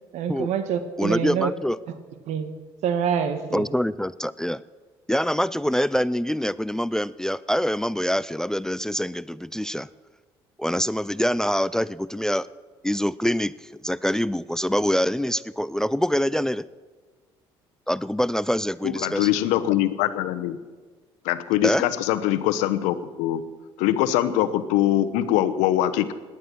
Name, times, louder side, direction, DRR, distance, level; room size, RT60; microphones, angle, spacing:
voice 1, 0.1-1.5 2.3-2.5 2.8-3.7, right 8 dB, 70° right, 9 dB, 1.7 m, -26 dB
voice 2, 1.0-1.8 3.5-4.6 5.1-9.9 10.6-12.5 12.8-16.7 17.9-19.3 21.6-21.8, equal, 5° left, 19 dB, 0.4 m, -25 dB
voice 3, 18.8-20.6 21.2-23.4 23.8-26.1, left 12 dB, 80° left, 12 dB, 1.0 m, -23 dB
18.5 x 11.5 x 6.1 m, 1.4 s
supercardioid pair, 65°, 12 cm